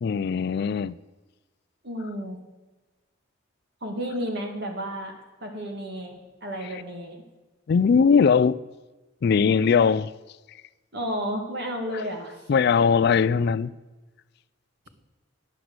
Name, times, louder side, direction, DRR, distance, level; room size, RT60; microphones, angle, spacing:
voice 1, 0.0-1.0 7.7-8.6 9.2-10.1 12.5-13.7, left 6 dB, 50° left, 0.3 m, -20 dB
voice 2, 1.8-2.4 3.8-7.2 9.5-9.7 10.9-12.3, equal, 55° right, 2.1 m, -32 dB
10.5 x 6.0 x 8.0 m
head